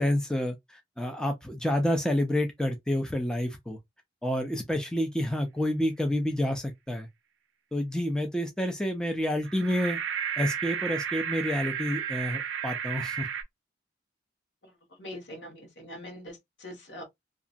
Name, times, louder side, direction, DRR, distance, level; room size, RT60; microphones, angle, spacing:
voice 1, 0.0-3.8 4.2-7.1 7.7-10.0 10.4-13.3, left 1 dB, 5° left, 0.4 m, -29 dB
sound 1, 9.4-13.4, right 8 dB, 80° right, 0.5 m, -33 dB
voice 2, 14.6-17.0, equal, 80° left, 1.5 m, -43 dB
2.8 x 2.5 x 2.5 m
head